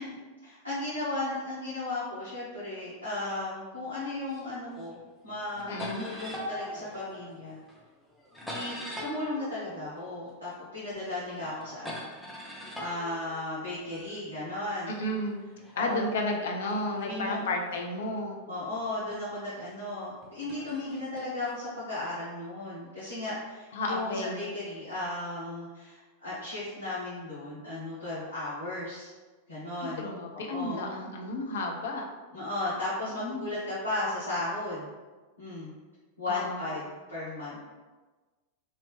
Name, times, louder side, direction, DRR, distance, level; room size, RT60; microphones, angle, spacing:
voice 1, 0.0-7.6 8.5-12.1 12.4-15.0 15.7-16.0 17.0-17.4 18.5-29.1 29.5-30.1 30.3-30.9 32.3-34.9 35.4-35.7 36.2-37.6, left 2 dB, 85° left, -13 dB, 1.0 m, -35 dB
sound 1, 4.3-5.0 5.3-10.6 10.9-14.1 14.9-18.4 19.1-19.2 20.2-21.6, left 1 dB, 5° left, 0.6 m, -43 dB
voice 2, 5.7-6.0 14.9-15.4 15.8-18.4 23.7-24.4 29.8-32.1 33.2-33.5 36.3-36.7, left 1 dB, 60° left, 1 dB, 0.5 m, -32 dB
2.8 x 2.7 x 3.2 m, 1.3 s
figure-of-eight pair, 90°, 0 cm